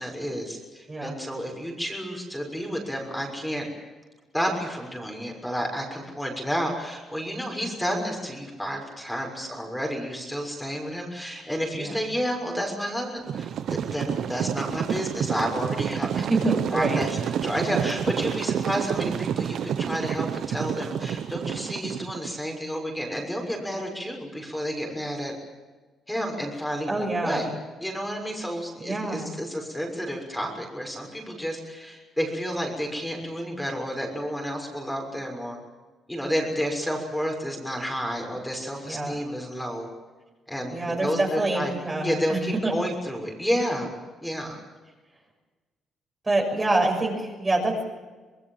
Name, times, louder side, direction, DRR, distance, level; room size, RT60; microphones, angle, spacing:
voice 1, 0.0-3.7 4.3-25.3 26.1-27.5 27.8-35.6 36.1-39.9 40.5-41.7 42.0-43.9 44.2-44.6, equal, 5° left, 1 dB, 6.4 m, -31 dB
voice 2, 0.9-1.2 11.7-12.0 16.2-17.0 26.9-27.5 28.8-29.2 38.8-39.2 40.7-42.7 46.2-47.9, right 2 dB, 25° right, 1 dB, 6.7 m, -26 dB
sound 1, 13.3-22.4, right 8 dB, 70° right, 1.0 m, -29 dB
26.0 x 20.0 x 7.5 m, 1.3 s
cardioid pair, 90°, 0 cm